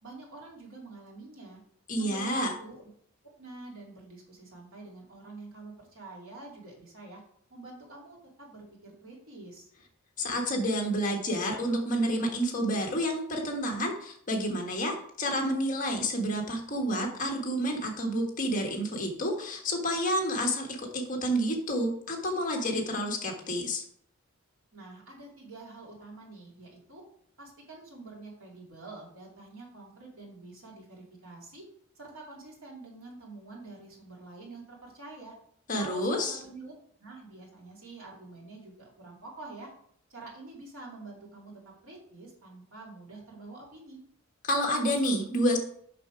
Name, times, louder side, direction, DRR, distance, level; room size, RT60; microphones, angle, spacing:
voice 1, 0.0-1.6 2.0-2.9 3.4-7.2 7.5-9.7 24.7-27.0 27.4-31.6 31.9-35.3 35.8-39.7 40.1-44.0, right 2 dB, 80° right, -2 dB, 2.7 m, -47 dB
voice 2, 1.9-2.5 10.2-23.8 35.7-36.4 44.4-45.6, equal, 40° left, 1 dB, 1.5 m, -29 dB
6.8 x 6.0 x 4.6 m, 0.63 s
head